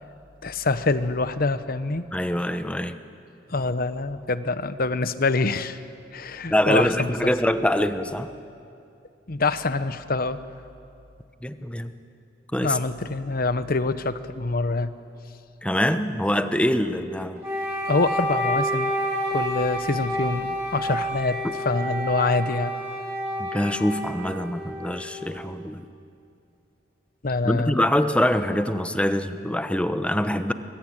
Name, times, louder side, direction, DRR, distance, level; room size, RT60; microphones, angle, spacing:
voice 1, 0.4-2.0 3.5-5.8 6.1-7.3 9.3-10.4 12.6-14.9 17.9-18.9 19.3-22.7 27.2-27.8, left 3 dB, 55° left, 12 dB, 1.0 m, -25 dB
voice 2, 2.1-3.0 6.5-8.3 11.4-11.9 12.5-12.8 15.6-17.4 23.4-25.8 27.4-30.5, left 1 dB, 5° left, 9 dB, 1.0 m, -24 dB
Wind instrument woodwind instrument, 17.4-25.5, equal, 15° right, 8.0 m, -29 dB
25.0 x 21.5 x 8.9 m, 2.5 s
head